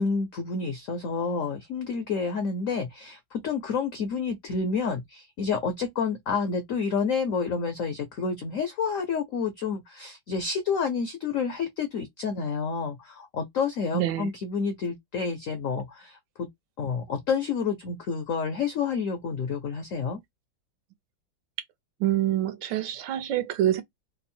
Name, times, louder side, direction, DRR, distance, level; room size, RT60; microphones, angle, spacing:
voice 1, 0.0-16.5 16.8-20.2, left 5 dB, 70° left, 0.7 m, -29 dB
voice 2, 13.9-14.3 22.0-23.8, right 12 dB, 80° right, 1.4 m, -26 dB
3.5 x 2.0 x 4.2 m
omnidirectional pair, 2.1 m